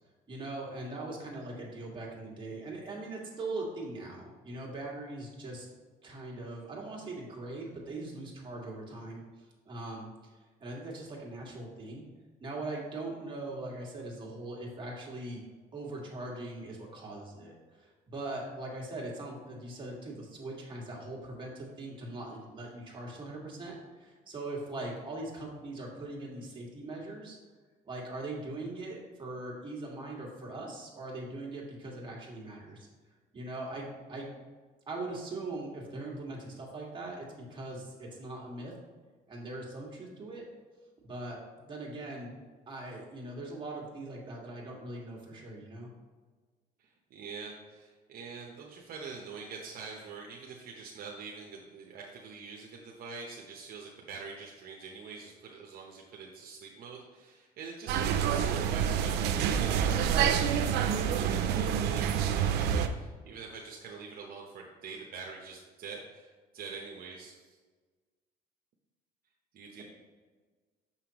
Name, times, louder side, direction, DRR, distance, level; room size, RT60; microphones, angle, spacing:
voice 1, 0.3-5.7 6.0-9.2 9.7-10.1 10.6-12.1 12.4-15.4 15.7-17.5 17.8-27.4 27.8-32.9 33.3-34.4 34.9-38.7 39.3-40.4 41.0-42.3 42.7-45.9 69.8-69.9, right 2 dB, 30° right, -3 dB, 2.0 m, -41 dB
voice 2, 46.8-67.6 69.5-69.8, right 5 dB, 60° right, -1 dB, 0.9 m, -45 dB
sound 1, 57.9-62.9, right 8 dB, 80° right, 0.5 m, -27 dB
6.8 x 5.7 x 3.0 m, 1.4 s
cardioid pair, 110°, 17 cm